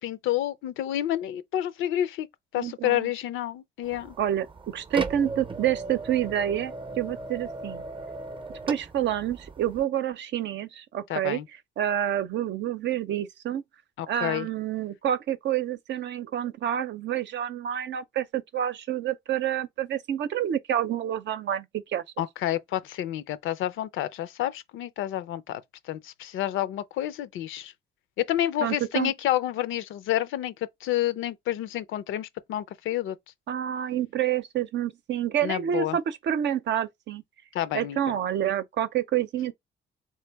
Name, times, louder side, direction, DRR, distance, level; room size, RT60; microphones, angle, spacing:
voice 1, 0.0-2.3 2.5-4.2 11.1-11.5 14.0-14.5 22.2-25.6 25.9-27.7 28.2-33.2 35.4-36.0 37.5-38.0, left 12 dB, 80° left, 0.5 m, -29 dB
voice 2, 2.6-3.1 4.2-7.8 8.7-11.4 11.8-13.6 14.1-22.0 28.6-29.1 33.5-37.2 37.7-39.5, right 10 dB, 65° right, 0.6 m, -28 dB
sound 1, 3.8-9.8, right 3 dB, 25° right, 0.6 m, -37 dB
3.8 x 3.2 x 3.4 m
cardioid pair, 90°, 20 cm